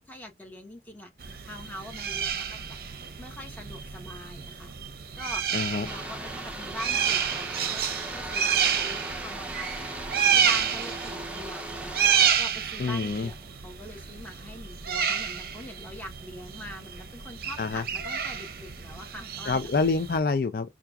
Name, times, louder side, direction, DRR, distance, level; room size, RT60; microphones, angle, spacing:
voice 1, 0.0-2.8 3.2-4.7 5.2-5.4 5.7-10.0 10.3-12.0 12.4-19.7, left 1 dB, 10° left, 1.0 m, -43 dB
sound 1, 1.2-20.2, right 8 dB, 55° right, 0.6 m, -30 dB
voice 2, 5.5-5.9 12.8-13.3 17.6-17.8 19.5-20.7, left 4 dB, 55° left, 0.4 m, -26 dB
sound 2, 5.8-12.3, right 2 dB, 5° right, 0.6 m, -38 dB
5.7 x 2.3 x 2.3 m
head